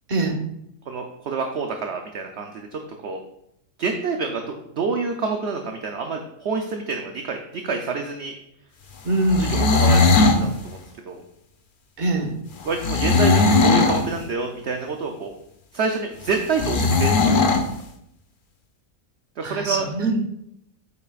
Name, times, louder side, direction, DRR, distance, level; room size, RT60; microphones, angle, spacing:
voice 1, 0.1-0.4 9.0-9.5 12.0-12.3 19.4-20.2, right 2 dB, 35° right, 3 dB, 1.2 m, -23 dB
voice 2, 0.9-3.2 3.8-8.3 9.4-10.8 11.0-11.2 12.6-15.3 15.7-17.5 19.4-19.9, right 4 dB, 55° right, 4 dB, 0.9 m, -28 dB
sound 1, 9.2-10.4 12.8-14.1 16.6-17.7, left 3 dB, 45° left, 0.8 m, -18 dB
9.1 x 8.3 x 2.4 m, 0.78 s
omnidirectional pair, 1.5 m